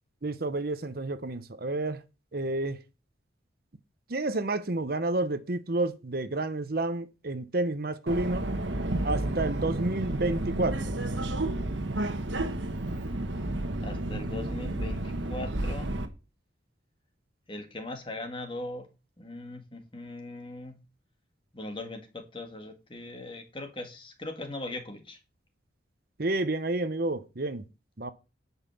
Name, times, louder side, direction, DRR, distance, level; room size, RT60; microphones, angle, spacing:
voice 1, 0.2-2.0 2.3-2.8 4.1-8.5 9.0-10.9 26.2-27.6 28.0-28.1, right 2 dB, 50° right, 0.8 m, -30 dB
Subway metro underground, 8.1-16.1, right 1 dB, 75° right, 1.4 m, -31 dB
voice 2, 13.8-15.9 17.5-18.9 19.2-20.8 21.5-25.2, left 2 dB, 25° left, 1.7 m, -40 dB
10.0 x 5.6 x 6.9 m
head